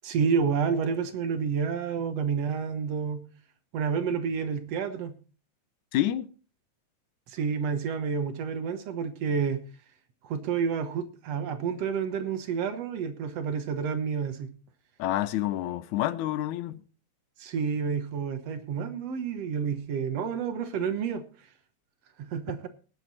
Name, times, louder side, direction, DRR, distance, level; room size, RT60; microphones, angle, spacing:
voice 1, 0.0-3.3 3.7-5.1 7.3-9.6 10.2-14.5 17.4-21.2 22.2-22.7, right 6 dB, 65° right, 2.1 m, -29 dB
voice 2, 5.9-6.3 15.0-16.8, left 13 dB, 85° left, 2.2 m, -28 dB
19.5 x 7.7 x 4.1 m
omnidirectional pair, 3.3 m